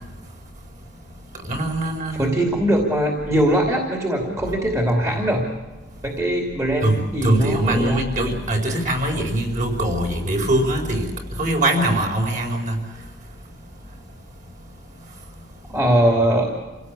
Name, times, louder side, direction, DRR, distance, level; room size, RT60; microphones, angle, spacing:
voice 1, 1.4-2.3 6.8-11.1 11.4-12.8, right 1 dB, 40° right, 2 dB, 4.7 m, -22 dB
voice 2, 2.2-5.4 6.0-8.0 15.7-16.5, right 1 dB, 15° right, 0 dB, 2.8 m, -21 dB
27.5 x 17.0 x 8.5 m, 1.2 s
head